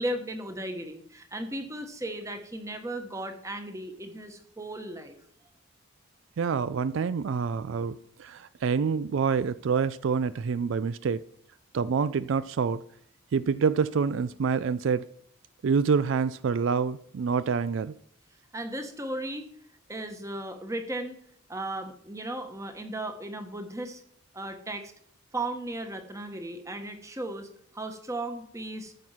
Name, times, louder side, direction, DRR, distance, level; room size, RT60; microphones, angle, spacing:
voice 1, 0.0-5.2 18.5-19.5 19.9-21.2 21.5-24.0 24.3-24.9 25.3-28.9, right 1 dB, 15° right, 1.2 m, -36 dB
voice 2, 6.4-11.2 11.7-12.8 13.3-15.1 15.6-17.9, right 5 dB, 65° right, 0.4 m, -27 dB
14.0 x 6.1 x 5.7 m
head